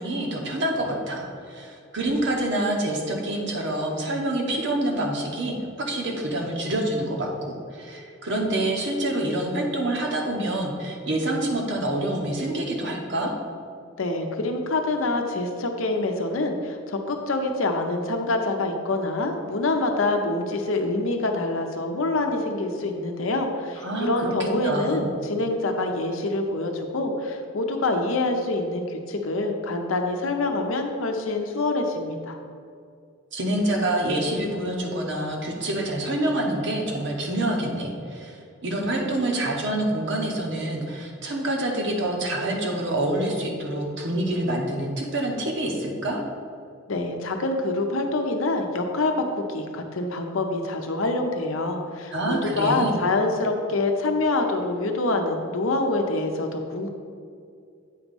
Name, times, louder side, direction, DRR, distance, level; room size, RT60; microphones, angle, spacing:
voice 1, 0.0-13.3 23.8-25.1 33.3-38.4 38.6-46.2 52.1-52.9, right 1 dB, 55° right, 0 dB, 1.0 m, -27 dB
voice 2, 14.0-32.4 46.9-56.9, left 2 dB, 75° left, 4 dB, 0.7 m, -26 dB
8.4 x 3.0 x 5.3 m, 2.3 s
head